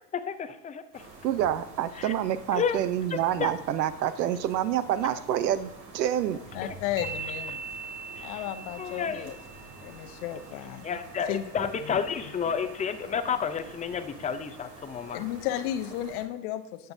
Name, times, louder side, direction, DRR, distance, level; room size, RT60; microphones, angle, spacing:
voice 1, 0.1-1.0 1.9-2.1 2.5-2.8 3.1-3.5 6.6-6.7 8.2-8.4 8.8-9.3 10.8-15.2, left 7 dB, 15° left, 10 dB, 0.5 m, -31 dB
sound 1, 0.9-16.2, right 2 dB, 50° right, 2.6 m, -48 dB
voice 2, 1.2-6.4, right 11 dB, 85° right, 14 dB, 0.8 m, -27 dB
voice 3, 6.5-7.6 8.2-9.4 9.8-10.9 11.3-11.4 11.8-12.0 15.1-16.9, left 12 dB, 60° left, 9 dB, 0.9 m, -33 dB
sound 2, 7.0-10.5, right 4 dB, 20° right, 1.8 m, -41 dB
11.0 x 7.9 x 2.7 m, 0.80 s
hypercardioid pair, 105°, 49 cm